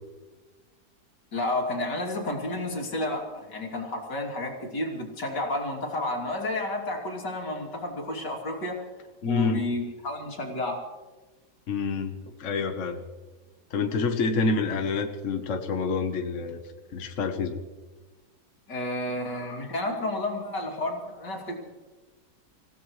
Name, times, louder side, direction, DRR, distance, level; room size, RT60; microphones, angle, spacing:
voice 1, 1.3-8.8 9.3-10.8 18.7-21.6, left 1 dB, 80° left, 0 dB, 3.5 m, -31 dB
voice 2, 9.2-9.7 11.7-13.0 13.7-16.6 16.9-17.6, left 4 dB, 50° left, 5 dB, 1.4 m, -27 dB
27.0 x 16.5 x 3.2 m, 1.2 s
omnidirectional pair, 1.8 m